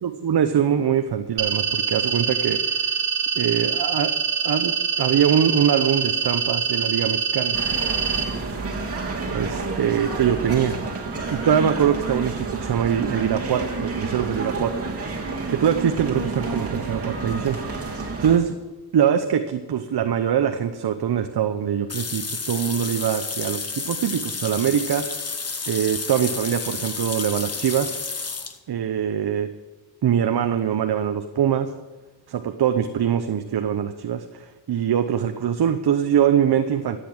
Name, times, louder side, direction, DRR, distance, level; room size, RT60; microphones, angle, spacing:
voice 1, 0.0-3.0 3.4-4.1 4.4-7.6 9.3-10.8 11.3-14.8 15.5-18.5 18.9-25.1 25.7-27.9 28.7-29.5 30.0-31.7 32.3-37.0, right 9 dB, 65° right, 8 dB, 0.9 m, -23 dB
sound 1, 1.4-8.2, right 6 dB, 85° right, 1.6 m, -24 dB
sound 2, 7.5-18.4, right 3 dB, 35° right, 2.8 m, -29 dB
sound 3, 21.9-28.6, left 4 dB, 35° left, 1.5 m, -31 dB
14.0 x 8.5 x 7.4 m, 1.2 s
cardioid pair, 65°, 42 cm